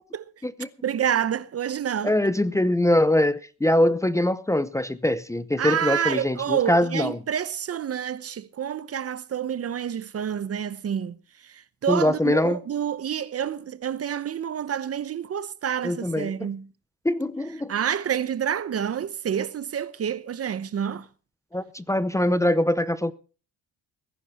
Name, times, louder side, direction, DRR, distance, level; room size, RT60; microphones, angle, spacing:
voice 1, 0.8-2.1 5.6-11.2 11.4-16.6 17.7-21.1, right 8 dB, 45° right, 0.8 m, -28 dB
voice 2, 2.0-7.2 11.9-12.6 15.8-16.5 17.0-17.7 21.5-23.1, left 1 dB, 10° left, 0.7 m, -23 dB
20.0 x 10.5 x 4.2 m
cardioid pair, 110°, 34 cm